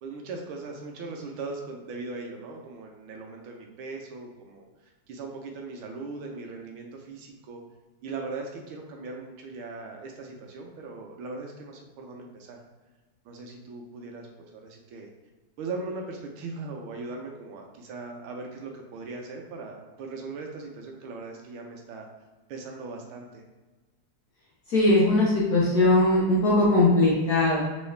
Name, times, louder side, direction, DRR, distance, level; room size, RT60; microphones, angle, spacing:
voice 1, 0.0-4.6 5.1-7.6 8.0-12.6 13.2-15.1 15.6-22.1 22.5-23.4, right 3 dB, 80° right, 2 dB, 1.4 m, -39 dB
voice 2, 24.7-27.6, left 2 dB, 65° left, -5 dB, 1.0 m, -20 dB
3.6 x 3.1 x 3.2 m, 1.2 s
omnidirectional pair, 2.4 m